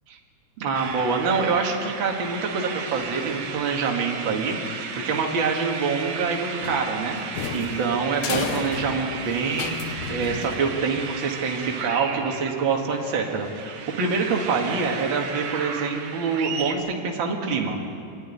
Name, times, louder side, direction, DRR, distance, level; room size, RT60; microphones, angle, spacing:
voice 1, 0.6-17.8, right 4 dB, 45° right, 1 dB, 2.3 m, -26 dB
sound 1, 0.7-16.7, right 6 dB, 70° right, 2.6 m, -35 dB
sound 2, 6.6-11.1, left 7 dB, 85° left, 2.5 m, -33 dB
23.0 x 12.0 x 10.0 m, 2.5 s
omnidirectional pair, 3.5 m